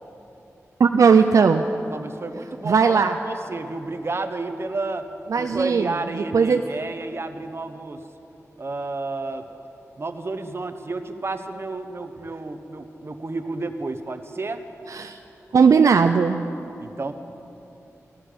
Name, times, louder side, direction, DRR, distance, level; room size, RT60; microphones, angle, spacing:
voice 1, 0.8-1.7 2.6-3.2 5.3-6.6 14.9-15.2 15.5-16.4, right 5 dB, 75° right, 6 dB, 0.4 m, -18 dB
voice 2, 1.9-5.1 5.4-8.0 8.6-9.5 10.0-14.6 16.8-17.1, right 3 dB, 50° right, 8 dB, 1.0 m, -31 dB
16.0 x 13.0 x 5.2 m, 2.9 s
cardioid pair, 50°, 6 cm